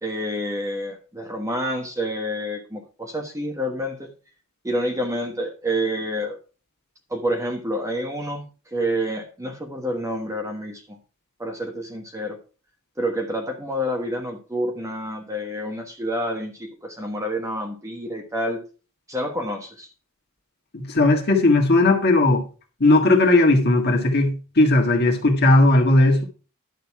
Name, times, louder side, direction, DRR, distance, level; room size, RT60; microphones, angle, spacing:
voice 1, 0.0-4.1 4.6-6.4 7.1-8.4 8.7-11.0 11.4-12.4 13.0-18.6 19.1-19.9, equal, 15° right, 1.3 m, -28 dB
voice 2, 20.7-22.4 22.8-26.2, left 2 dB, 50° left, 1.8 m, -17 dB
11.0 x 6.7 x 4.7 m
head